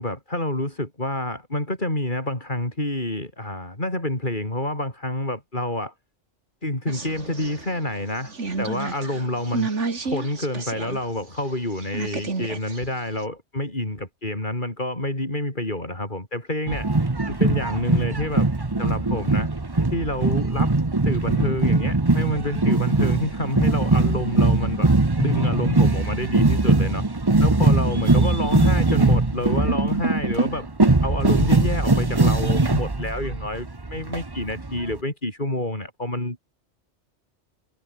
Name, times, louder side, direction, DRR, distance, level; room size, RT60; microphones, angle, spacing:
voice 1, 0.0-5.9 6.6-9.7 10.0-16.9 17.3-18.5 18.8-19.5 19.9-20.8 21.0-24.9 25.2-27.0 27.4-30.7 31.0-36.4, left 1 dB, 45° left, 6.3 m, -28 dB
sound 1, 6.9-11.0 11.4-13.2, right 4 dB, 90° right, 2.9 m, -31 dB
sound 2, 16.7-35.0, right 2 dB, 20° right, 1.2 m, -21 dB
omnidirectional pair, 1.2 m